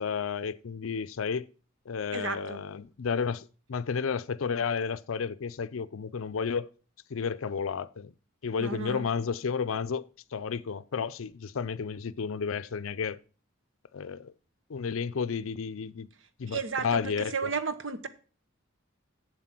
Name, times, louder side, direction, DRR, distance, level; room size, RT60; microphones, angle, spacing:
voice 1, 0.0-1.5 1.9-6.7 7.1-8.1 8.4-10.0 10.3-13.2 13.9-14.3 14.7-16.1 16.4-17.5, left 6 dB, 80° left, 0.5 m, -32 dB
voice 2, 2.1-2.6 8.6-9.1 16.5-18.1, right 5 dB, 65° right, 1.0 m, -33 dB
7.8 x 7.5 x 5.9 m
head